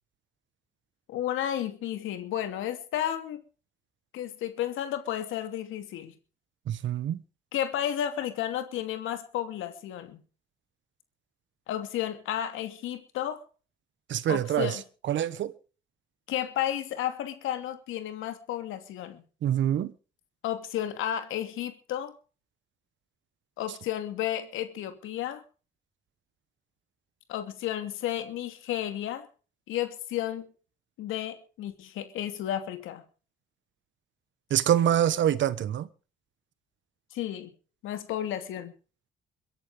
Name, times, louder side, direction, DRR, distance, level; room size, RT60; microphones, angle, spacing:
voice 1, 1.1-3.4 4.1-6.2 7.5-10.2 11.7-13.4 14.3-14.8 16.3-19.2 20.4-22.1 23.6-25.4 27.3-29.3 29.7-30.5 31.0-33.0 37.1-37.5 37.8-38.7, left 11 dB, 90° left, 2.9 m, -32 dB
voice 2, 6.7-7.2 14.1-14.8 15.1-15.6 19.4-19.9 34.5-35.9, right 10 dB, 70° right, 1.3 m, -25 dB
23.0 x 10.5 x 5.2 m
cardioid pair, 90°, 20 cm